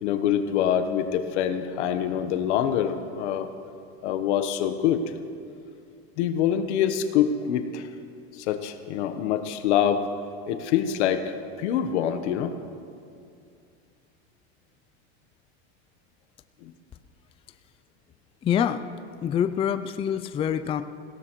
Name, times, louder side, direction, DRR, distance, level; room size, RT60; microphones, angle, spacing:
voice 1, 0.0-3.5 4.0-5.0 6.2-7.9 8.3-10.1 10.5-12.5 16.6-16.7, left 9 dB, 90° left, 8 dB, 1.1 m, -25 dB
voice 2, 18.4-18.9 19.2-20.8, left 9 dB, 20° left, 10 dB, 0.3 m, -25 dB
21.5 x 17.0 x 3.1 m, 2.4 s
supercardioid pair, 135°, 33 cm